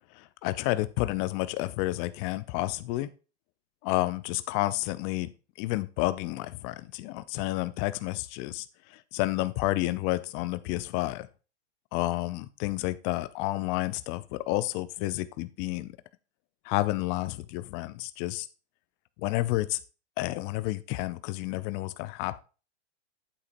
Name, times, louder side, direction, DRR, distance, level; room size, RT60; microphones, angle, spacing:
voice 1, 0.1-3.1 3.8-5.3 5.6-11.3 11.9-15.9 16.6-18.5 19.2-19.8 20.2-22.4, left 18 dB, 35° left, 0.6 m, -30 dB
8.5 x 8.4 x 2.6 m
hypercardioid pair, 115°, 34 cm